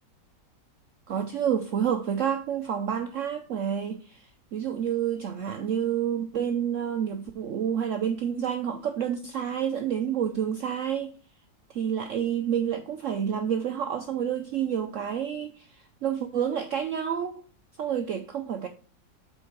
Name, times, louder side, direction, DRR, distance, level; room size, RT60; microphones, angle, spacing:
voice 1, 1.1-11.1 11.7-17.4 17.8-18.7, right 8 dB, 80° right, 0.7 m, -29 dB
7.7 x 4.4 x 4.6 m
omnidirectional pair, 2.0 m